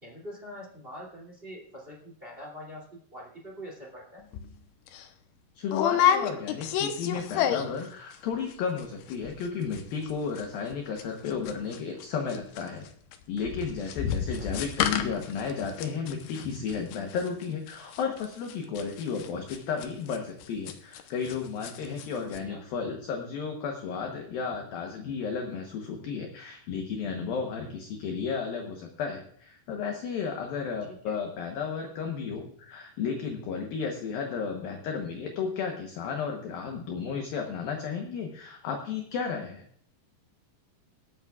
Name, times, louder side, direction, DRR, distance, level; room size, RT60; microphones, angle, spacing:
voice 1, 0.0-4.3 14.3-14.5 22.3-22.6 30.9-31.0, equal, 15° right, -3 dB, 2.1 m, -44 dB
sound 1, 4.3-4.5 4.9-5.0 5.7-7.9 8.1-8.5 8.8-8.9 9.1-9.5 9.7-12.0 12.3-21.4 21.6-22.1 22.3-22.4, left 9 dB, 90° left, 3.3 m, -30 dB
voice 2, 5.6-12.9 13.3-39.6, left 6 dB, 70° left, 3 dB, 2.4 m, -33 dB
25.5 x 8.7 x 2.4 m, 0.64 s
omnidirectional pair, 5.3 m